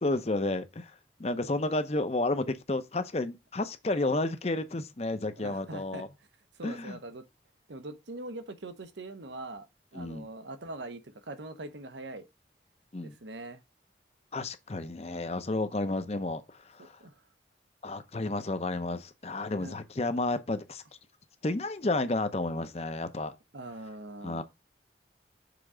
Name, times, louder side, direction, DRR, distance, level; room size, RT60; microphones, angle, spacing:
voice 1, 0.0-0.9 1.2-6.1 6.6-7.0 9.9-10.3 12.9-13.1 14.3-16.9 17.8-20.8 21.4-23.3 24.2-24.4, left 2 dB, 35° left, 0.7 m, -31 dB
voice 2, 5.4-6.0 6.6-7.2 7.7-9.7 9.9-12.2 13.0-13.6 17.0-17.1 19.5-19.7 23.5-24.4, right 2 dB, 80° right, 0.9 m, -42 dB
6.8 x 3.7 x 4.9 m
head